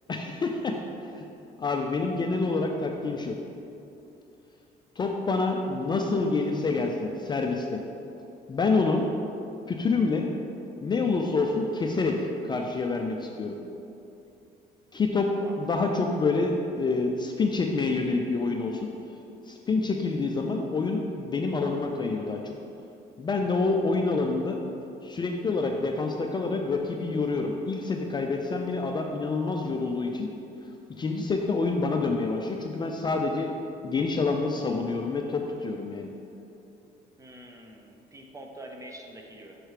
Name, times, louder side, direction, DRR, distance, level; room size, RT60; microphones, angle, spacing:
voice 1, 0.1-1.2 1.6-3.4 5.0-7.8 8.5-9.1 9.7-10.3 10.8-13.6 14.9-15.3 15.6-18.9 19.5-22.5 23.2-24.6 25.0-30.3 31.0-33.5 33.8-36.1, left 3 dB, 25° left, 2 dB, 0.4 m, -27 dB
voice 2, 37.2-39.6, right 1 dB, 20° right, 2 dB, 0.7 m, -45 dB
6.6 x 3.1 x 4.8 m, 2.7 s
cardioid pair, 110°, 17 cm